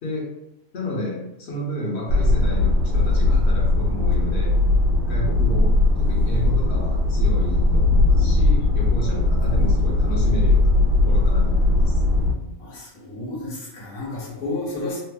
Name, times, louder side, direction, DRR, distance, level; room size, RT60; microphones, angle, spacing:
voice 1, 0.7-4.6 5.1-10.7 11.1-12.0, equal, 55° left, -2 dB, 1.0 m, -31 dB
sound 1, 2.1-12.3, left 2 dB, 75° right, 1.1 m, -19 dB
voice 2, 12.6-15.0, left 2 dB, 80° left, -3 dB, 1.4 m, -31 dB
3.2 x 2.0 x 3.4 m, 0.83 s
omnidirectional pair, 1.5 m